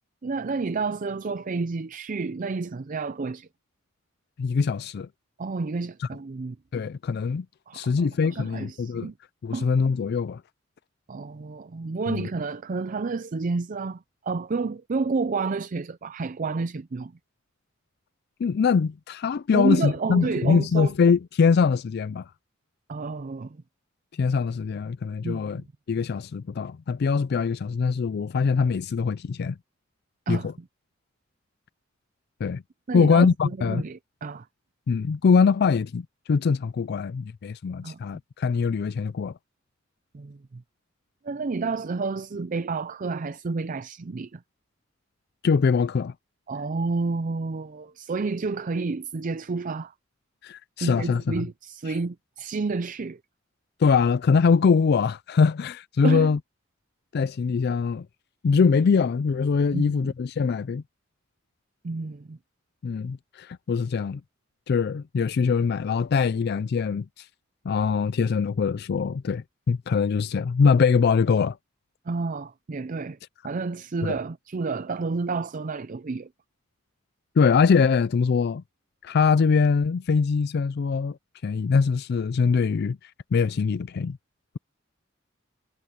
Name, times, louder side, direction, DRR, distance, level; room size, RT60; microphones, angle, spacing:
voice 1, 0.2-3.5 5.4-6.6 7.7-9.1 9.5-9.7 11.1-17.1 19.5-20.9 22.9-23.6 25.2-25.7 30.3-30.5 32.9-34.5 37.8-38.0 40.1-40.6 41.2-44.4 46.5-49.9 50.8-53.2 56.0-56.3 59.7-60.1 61.8-62.4 72.1-73.2 73.4-76.3, right 4 dB, 40° right, 0.5 m, -30 dB
voice 2, 4.4-5.1 6.0-6.1 6.7-7.5 7.7-9.1 9.4-10.4 12.1-12.3 18.4-22.3 24.2-25.6 25.9-29.6 30.3-30.4 32.4-32.6 32.9-33.8 34.9-39.3 45.4-46.1 50.4-51.4 53.8-56.4 57.1-58.1 58.4-60.8 62.8-64.2 64.7-67.3 67.7-71.6 74.0-74.1 77.4-78.6 79.0-81.2 81.4-84.2, left 5 dB, 55° left, 0.4 m, -23 dB
head